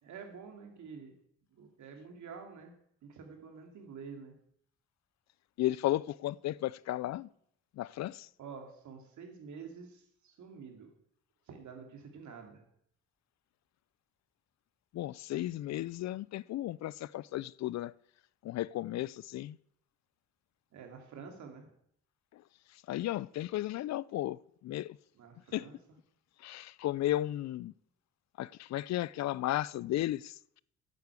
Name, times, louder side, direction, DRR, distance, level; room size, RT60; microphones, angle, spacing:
voice 1, 0.0-1.2 1.5-2.7 3.0-4.3 8.4-10.9 11.5-12.7 20.7-21.7 25.1-25.8, right 5 dB, 70° right, 2.6 m, -48 dB
voice 2, 5.6-7.3 7.8-8.3 14.9-17.9 18.4-19.6 22.3-22.4 22.9-25.0 25.5-25.7 26.4-27.7 28.4-30.6, left 14 dB, 60° left, 0.4 m, -34 dB
8.3 x 8.3 x 8.3 m
cardioid pair, 90°, 30 cm